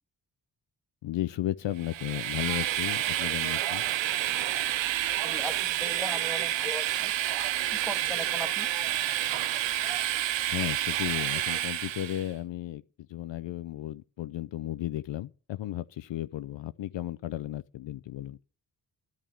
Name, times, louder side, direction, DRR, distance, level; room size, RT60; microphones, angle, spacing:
voice 1, 1.0-3.8 10.5-12.8 13.1-18.4, left 13 dB, 75° left, 0.6 m, -34 dB
Train, 1.8-12.3, right 13 dB, 80° right, 0.6 m, -29 dB
voice 2, 5.2-7.1 7.8-8.7, equal, ahead, 1.8 m, -38 dB
10.5 x 6.2 x 8.2 m
cardioid pair, 40°, 44 cm